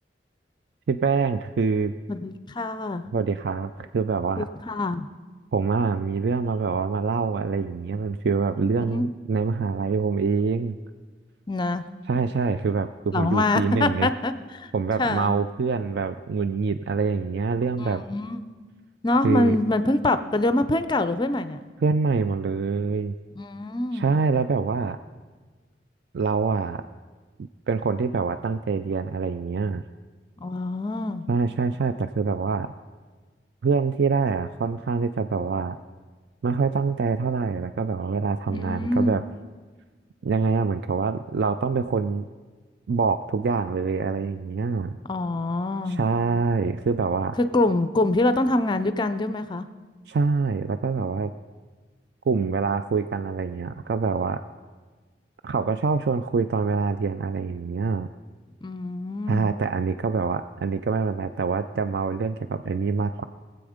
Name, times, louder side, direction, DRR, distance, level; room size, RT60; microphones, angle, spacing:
voice 1, 0.9-1.9 3.1-4.5 5.5-10.8 12.1-14.1 14.7-18.0 19.2-19.6 21.8-23.1 23.9-25.0 26.1-26.8 27.7-29.8 31.3-32.7 33.6-35.8 36.4-39.2 40.2-42.2 42.9-45.0 45.9-47.4 50.1-51.3 52.3-54.4 55.4-58.1 59.3-63.2, right 4 dB, 65° right, 10 dB, 0.4 m, -25 dB
voice 2, 2.1-3.0 4.4-5.1 8.8-9.1 11.5-11.9 13.1-14.7 15.0-15.4 17.8-18.5 19.0-21.6 23.4-24.1 30.4-31.3 38.5-39.2 45.1-46.0 47.4-49.7 58.6-59.5, left 2 dB, 25° left, 11 dB, 0.4 m, -25 dB
22.0 x 7.9 x 5.0 m, 1.4 s
head